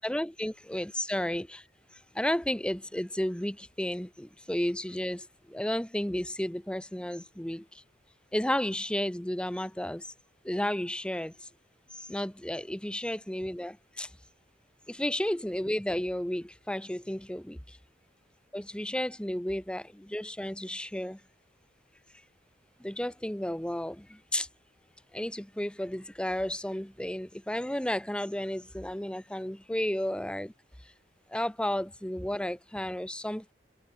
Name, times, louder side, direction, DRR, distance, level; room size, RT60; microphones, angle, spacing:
voice 1, 0.0-1.6 2.1-7.8 8.3-10.1 10.4-11.5 11.9-14.1 14.9-17.8 18.5-21.2 22.8-24.5 25.1-30.5 31.3-33.5, left 1 dB, 5° left, 0.8 m, -33 dB
head